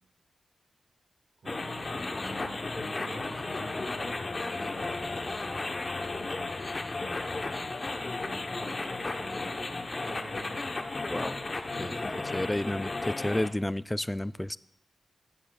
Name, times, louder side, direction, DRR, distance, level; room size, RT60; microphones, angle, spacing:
voice 1, 1.4-4.3 4.6-6.6 7.0-7.8 8.2-10.6 11.7-12.1, right 1 dB, 70° right, -2 dB, 4.6 m, -48 dB
sound 1, 1.5-13.5, left 3 dB, 45° left, 0.9 m, -34 dB
voice 2, 12.3-14.6, left 1 dB, 15° left, 17 dB, 0.3 m, -31 dB
18.5 x 7.3 x 2.3 m, 0.72 s
cardioid pair, 45°, 0 cm